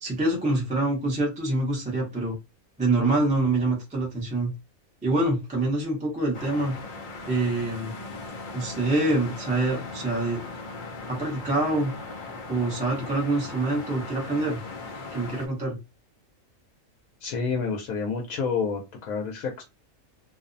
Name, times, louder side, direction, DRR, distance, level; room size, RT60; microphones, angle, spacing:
voice 1, 0.0-2.4 2.8-4.5 5.0-6.7 7.3-7.9 8.5-10.4 11.1-11.9 12.5-14.6 15.1-15.8, right 2 dB, 10° right, -2 dB, 0.5 m, -25 dB
sound 1, 6.3-15.5, left 3 dB, 65° left, 0.5 m, -38 dB
voice 2, 17.2-19.6, left 5 dB, 85° left, 1 dB, 1.1 m, -29 dB
2.6 x 2.0 x 2.5 m, 0.25 s
omnidirectional pair, 1.4 m